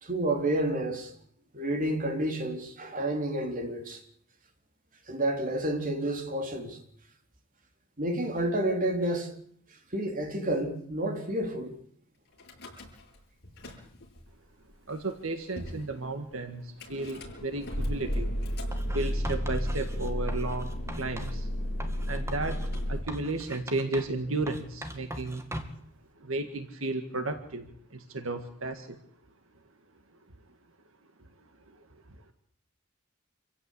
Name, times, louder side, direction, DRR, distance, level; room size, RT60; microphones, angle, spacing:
voice 1, 0.0-1.1 1.5-4.0 5.1-6.8 8.0-9.3 9.9-11.7, right 1 dB, 40° right, 3.9 m, -30 dB
Car / Engine starting / Idling, 12.4-13.2 13.4-14.2 14.9-15.0 15.1-15.2 15.6-15.8 16.8-23.0, equal, 55° left, 7.8 m, -33 dB
voice 2, 14.9-18.3 18.9-21.5 22.0-22.6 22.9-25.4 26.2-29.0 31.7-31.8, right 2 dB, 75° right, 1.9 m, -34 dB
Writing, 18.7-21.4 21.8-24.2 24.5-25.9, equal, 15° right, 2.3 m, -41 dB
27.0 x 16.0 x 8.5 m
head